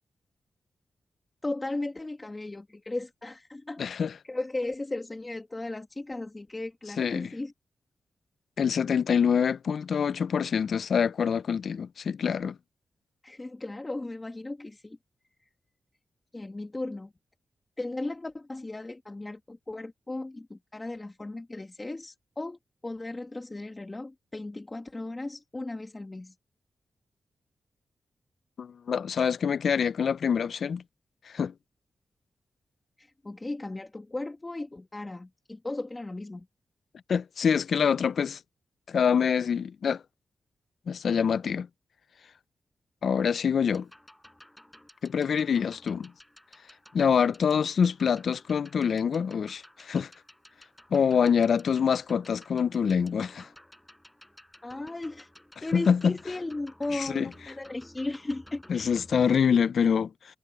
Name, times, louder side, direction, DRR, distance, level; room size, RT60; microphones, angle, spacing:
voice 1, 1.4-7.5 13.2-15.0 16.3-17.1 17.8-26.3 33.0-36.5 50.9-51.1 54.6-55.3 55.6-59.0, left 2 dB, 25° left, 2.0 m, -36 dB
voice 2, 3.8-4.1 7.0-7.3 8.6-12.6 28.6-30.8 31.3-31.5 37.1-38.4 38.9-40.0 40.9-41.7 43.0-43.9 45.0-46.1 46.9-50.1 50.9-53.5 55.7-56.1 56.9-57.3 58.7-60.1, left 7 dB, 70° left, 0.5 m, -25 dB
sound 1, 43.6-59.5, left 1 dB, 5° left, 7.1 m, -54 dB
wide cardioid pair, 100°, 0 cm